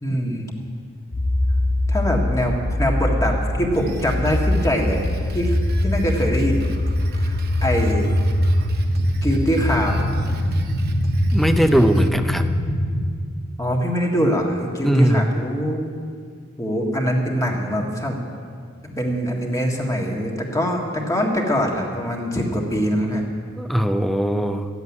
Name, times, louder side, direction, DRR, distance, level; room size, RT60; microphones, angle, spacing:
voice 1, 0.0-0.4 1.9-5.1 5.3-5.6 5.8-6.9 7.1-8.1 9.2-10.1 13.6-16.0 16.6-18.2 18.8-23.3, equal, 15° left, 0 dB, 1.7 m, -23 dB
sound 1, 1.1-13.1, left 1 dB, 85° left, 1.4 m, -22 dB
Drum kit, 3.7-12.1, right 2 dB, 50° right, 1.0 m, -39 dB
voice 2, 11.3-12.5 14.8-15.3 23.6-24.7, equal, ahead, 8 dB, 0.6 m, -19 dB
14.0 x 8.1 x 9.6 m, 2.1 s
head